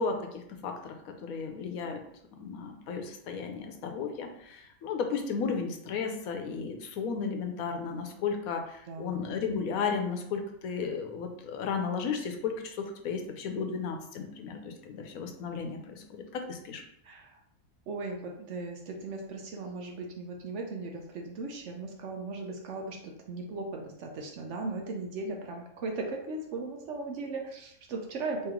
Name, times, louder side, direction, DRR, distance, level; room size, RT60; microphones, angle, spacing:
voice 1, 0.0-2.0 2.3-16.8, left 5 dB, 75° left, 5 dB, 1.0 m, -34 dB
voice 2, 17.0-17.4 17.9-28.5, right 3 dB, 65° right, 2 dB, 0.8 m, -37 dB
3.1 x 3.0 x 3.6 m, 0.73 s
omnidirectional pair, 1.5 m